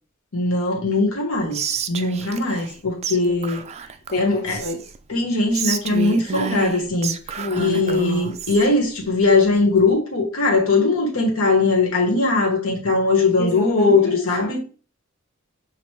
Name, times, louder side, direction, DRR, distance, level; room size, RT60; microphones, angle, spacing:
voice 1, 0.3-3.6 4.2-4.6 5.1-7.1 7.5-14.6, left 3 dB, 75° left, 1.4 m, -20 dB
Whispering, 1.5-2.8 3.0-3.2 3.4-5.0 5.5-8.7, right 7 dB, 30° right, 0.3 m, -29 dB
voice 2, 4.1-4.8 7.4-8.0 13.4-14.6, left 2 dB, 45° left, 1.0 m, -28 dB
5.9 x 2.5 x 3.3 m
head